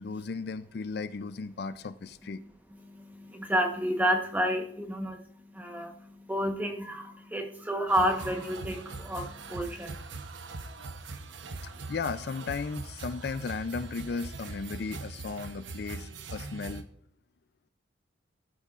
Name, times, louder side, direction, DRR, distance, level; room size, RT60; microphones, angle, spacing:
voice 1, 0.0-2.4 11.6-16.9, left 4 dB, 55° left, 14 dB, 0.4 m, -35 dB
voice 2, 2.8-10.0, equal, 10° right, 5 dB, 1.0 m, -30 dB
sound 1, 7.9-16.8, right 3 dB, 75° right, 0.9 m, -41 dB
16.5 x 9.0 x 2.5 m, 0.70 s
head